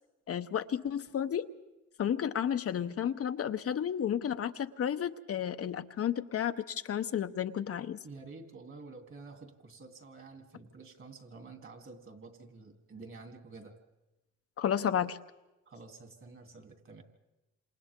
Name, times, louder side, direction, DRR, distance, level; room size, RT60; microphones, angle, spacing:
voice 1, 0.3-1.5 2.0-8.0 14.6-15.2, left 9 dB, 50° left, 9 dB, 0.8 m, -32 dB
voice 2, 8.0-13.7 15.7-17.0, right 3 dB, 45° right, 4 dB, 3.0 m, -49 dB
28.0 x 27.0 x 3.7 m, 1.0 s
cardioid pair, 90°, 30 cm